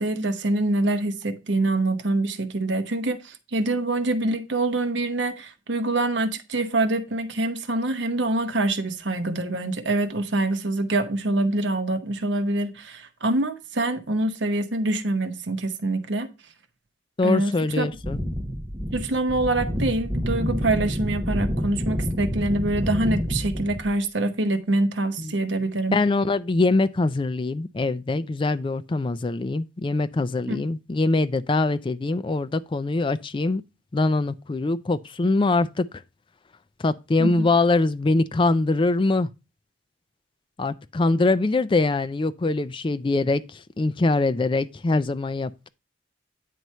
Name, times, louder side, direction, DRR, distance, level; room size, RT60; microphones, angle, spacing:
voice 1, 0.0-16.3 17.2-17.9 18.9-26.0 30.5-30.6 37.2-37.5, right 2 dB, 70° right, 0.9 m, -25 dB
voice 2, 17.2-18.2 25.2-25.3 25.9-33.6 33.9-35.9 36.8-39.3 40.6-45.7, left 3 dB, 25° left, 0.4 m, -23 dB
sound 1, 17.9-24.0, equal, 15° right, 1.1 m, -28 dB
9.2 x 3.1 x 5.4 m
head